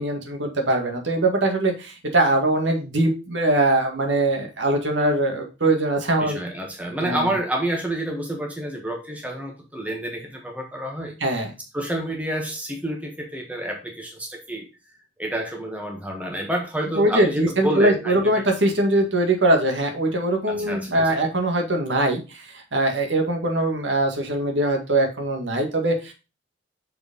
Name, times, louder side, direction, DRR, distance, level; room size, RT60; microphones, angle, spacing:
voice 1, 0.0-6.4 7.0-7.3 11.2-11.5 17.0-26.1, right 1 dB, 75° right, 3 dB, 1.9 m, -22 dB
voice 2, 6.2-11.1 11.7-14.7 15.2-18.4 20.5-21.1, right 1 dB, 10° right, 1 dB, 1.4 m, -29 dB
6.5 x 4.5 x 5.2 m, 0.30 s
head